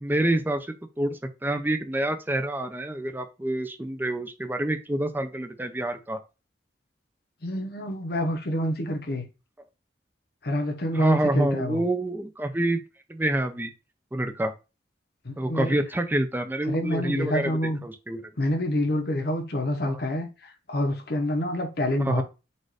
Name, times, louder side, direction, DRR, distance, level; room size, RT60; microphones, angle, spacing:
voice 1, 0.0-6.2 10.9-12.8 13.1-13.7 14.1-14.5 15.4-18.2 19.9-20.0 22.0-22.2, right 1 dB, 10° right, 0.4 m, -27 dB
voice 2, 7.4-9.3 10.4-11.8 15.2-15.8 16.7-17.8 18.4-22.2, left 1 dB, 55° left, 1.0 m, -27 dB
4.2 x 2.5 x 4.8 m
head